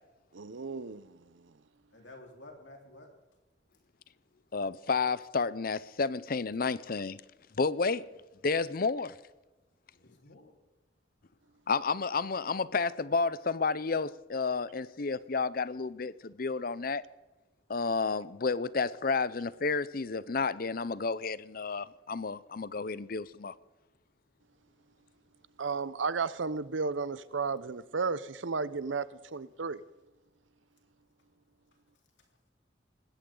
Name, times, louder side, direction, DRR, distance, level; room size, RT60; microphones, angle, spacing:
voice 1, 0.3-1.2 25.6-29.8, right 4 dB, 90° right, 0.8 m, -33 dB
voice 2, 1.9-3.1 7.9-8.0 9.9-10.6 32.2-32.3, left 2 dB, 75° left, 4.1 m, -52 dB
voice 3, 4.5-7.2 7.6-8.1 8.4-9.2 11.7-17.0 17.7-23.5, left 4 dB, 50° left, 0.6 m, -31 dB
20.0 x 16.5 x 3.9 m
head